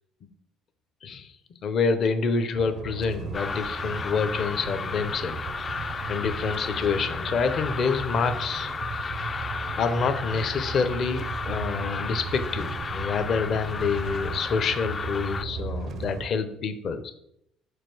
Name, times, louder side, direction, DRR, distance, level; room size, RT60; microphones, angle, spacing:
voice 1, 1.6-5.4 6.1-8.7 9.7-17.1, left 5 dB, 55° left, 10 dB, 0.8 m, -27 dB
sound 1, 2.6-16.3, right 6 dB, 60° right, 0.5 m, -36 dB
sound 2, 3.3-15.5, left 5 dB, 35° left, 0.4 m, -34 dB
5.1 x 4.4 x 6.1 m, 0.76 s
supercardioid pair, 85°, 0 cm